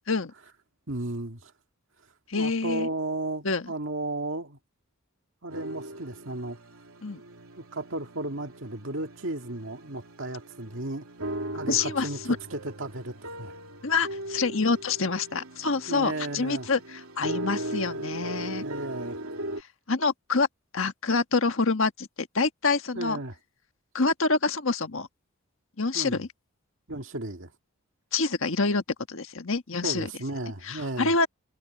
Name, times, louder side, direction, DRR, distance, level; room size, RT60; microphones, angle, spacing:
voice 1, 0.9-1.5 2.4-4.6 5.4-6.6 7.6-11.0 11.5-12.2 12.5-13.5 15.9-16.7 18.6-19.2 22.9-23.3 25.9-26.2 26.9-27.5 29.8-31.1, right 2 dB, 60° right, 2.1 m, -34 dB
voice 2, 2.3-2.9 3.4-3.7 7.0-7.2 11.7-12.4 13.8-18.6 19.6-20.5 20.7-23.2 23.9-25.1 25.8-26.3 28.1-30.1 30.6-31.3, left 4 dB, 65° left, 1.5 m, -27 dB
sound 1, 5.5-19.6, right 1 dB, 80° right, 3.2 m, -38 dB
head